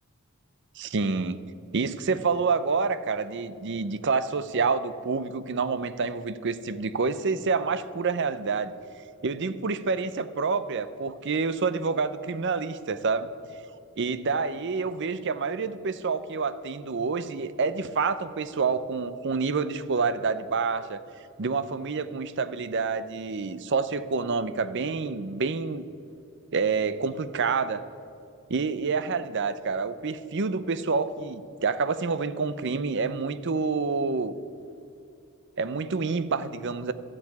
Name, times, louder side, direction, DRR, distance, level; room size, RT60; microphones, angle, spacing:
voice 1, 0.8-1.4 1.7-8.7 9.2-13.3 14.0-21.0 21.4-25.8 26.5-27.9 28.5-34.3 35.6-36.9, right 4 dB, 55° right, 13 dB, 0.6 m, -28 dB
13.0 x 7.4 x 9.4 m, 2.6 s
head